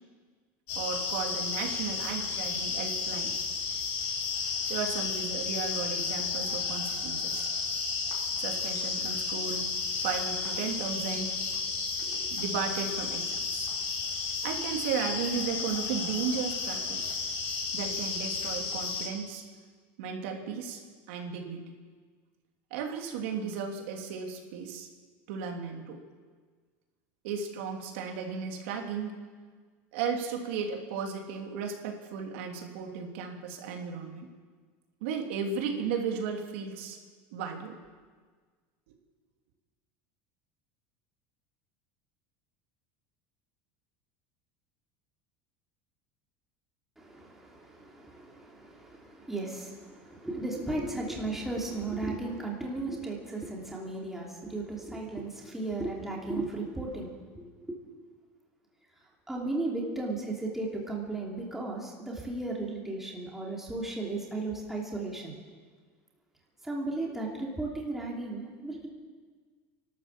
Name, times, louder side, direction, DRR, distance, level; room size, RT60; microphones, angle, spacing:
sound 1, 0.7-19.1, left 4 dB, 50° left, 5.0 m, -32 dB
voice 1, 0.7-3.3 4.7-7.5 8.4-9.7 10.0-11.3 12.0-13.7 14.4-17.1 17.7-19.4 20.0-20.8 21.1-21.7 22.7-24.9 25.3-26.0 27.2-29.2 29.9-34.3 35.0-37.0 37.3-37.8, right 6 dB, 75° right, 2 dB, 3.1 m, -35 dB
voice 2, 47.0-57.8 59.3-65.3 66.6-68.9, right 2 dB, 5° right, -2 dB, 3.0 m, -35 dB
29.0 x 12.5 x 7.5 m, 1.5 s
cardioid pair, 165°, 6 cm